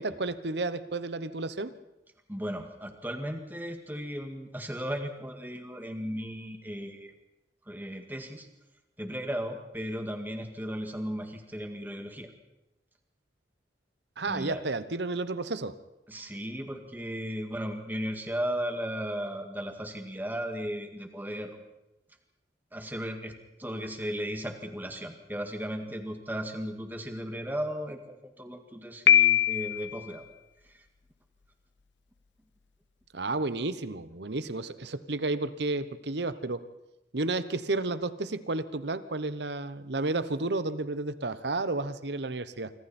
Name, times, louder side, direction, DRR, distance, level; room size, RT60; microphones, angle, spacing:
voice 1, 0.0-1.7 14.2-15.8 33.1-36.6 37.1-42.7, right 2 dB, 70° right, 14 dB, 1.1 m, -32 dB
voice 2, 2.3-7.1 7.7-8.5 9.0-12.3 14.3-14.6 16.1-21.6 22.7-30.3 30.6-30.8, equal, 10° right, 5 dB, 1.9 m, -36 dB
Piano, 29.1-30.0, left 11 dB, 80° left, 0.7 m, -21 dB
26.5 x 25.0 x 4.4 m, 0.94 s
head